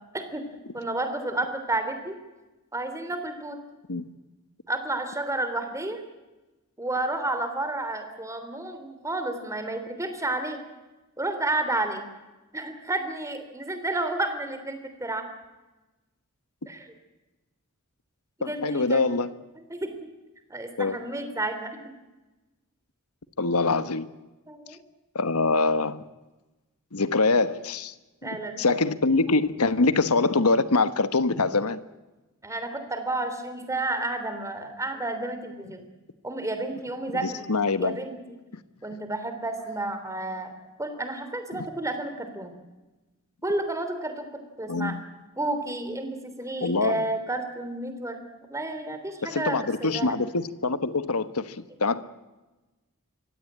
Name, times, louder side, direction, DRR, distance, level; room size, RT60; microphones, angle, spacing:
voice 1, 0.7-2.2 2.7-3.6 4.7-6.0 6.8-10.6 11.2-12.1 12.5-15.2 16.7-16.9 18.4-19.1 19.7-19.9 20.5-22.0 24.5-24.8 28.2-28.6 32.4-35.8 36.2-37.5 37.8-38.4 38.8-40.5 40.8-42.5 43.4-44.3 44.6-44.9 45.4-48.2 48.5-50.2, right 2 dB, 15° right, 3.2 m, -31 dB
voice 2, 18.4-19.3 20.8-21.0 23.4-24.1 25.1-26.0 26.9-27.9 28.6-31.8 37.2-38.0 41.5-41.7 44.7-45.0 46.6-47.0 49.2-52.0, left 3 dB, 80° left, 1.3 m, -24 dB
24.0 x 17.0 x 8.8 m
head